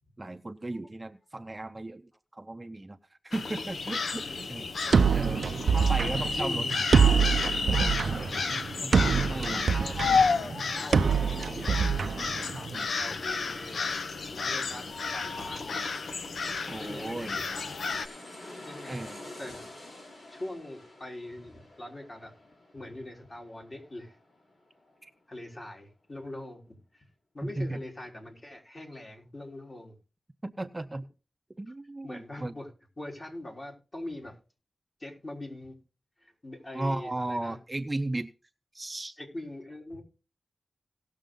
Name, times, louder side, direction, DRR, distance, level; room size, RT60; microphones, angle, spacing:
voice 1, 0.2-3.0 3.2-4.7 5.1-5.4 5.8-6.7 7.7-8.1 8.8-9.6 12.7-13.0 16.7-17.4 18.9-19.2 25.0-25.1 27.6-27.8 30.4-31.1 31.6-32.5 36.7-38.3 38.7-39.1, right 2 dB, 25° right, 8 dB, 0.7 m, -35 dB
sound 1, 3.3-18.1, left 4 dB, 85° left, 0.9 m, -31 dB
voice 2, 4.2-6.7 8.1-8.5 9.0-10.0 10.7-12.0 12.5-13.9 14.3-15.9 16.8-17.3 18.6-19.1 19.4-19.6 20.3-22.3 22.7-24.2 25.3-27.1 27.3-30.0 32.0-32.7 33.0-34.4 35.0-35.8 36.2-37.6 39.2-40.0, left 1 dB, 35° left, 0 dB, 4.0 m, -43 dB
sound 2, 4.9-12.8, right 6 dB, 85° right, 0.6 m, -25 dB
sound 3, 14.3-25.4 25.8-25.9, left 1 dB, 70° left, 4.2 m, -49 dB
18.0 x 6.5 x 3.8 m, 0.33 s
wide cardioid pair, 100°, 0 cm